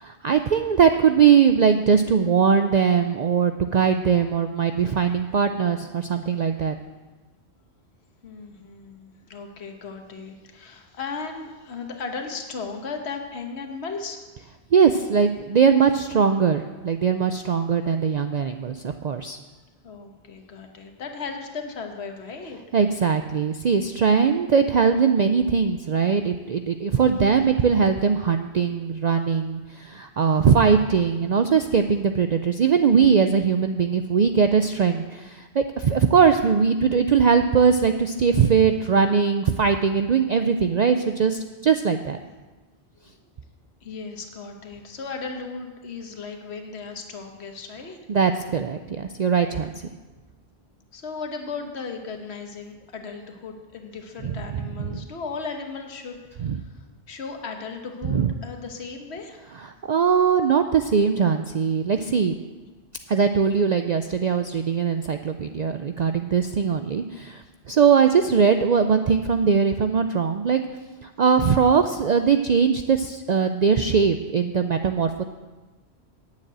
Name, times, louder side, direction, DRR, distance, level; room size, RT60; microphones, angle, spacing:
voice 1, 0.2-6.8 14.7-19.4 22.7-42.2 48.1-49.7 54.2-54.3 54.6-55.0 56.4-56.6 58.1-58.3 59.9-62.3 63.1-70.6 71.0-75.2, right 6 dB, 50° right, 7 dB, 0.5 m, -20 dB
voice 2, 8.2-14.2 19.8-22.6 43.8-48.0 50.9-59.4, left 4 dB, 75° left, 4 dB, 1.4 m, -36 dB
9.2 x 7.3 x 8.9 m, 1.2 s
omnidirectional pair, 1.1 m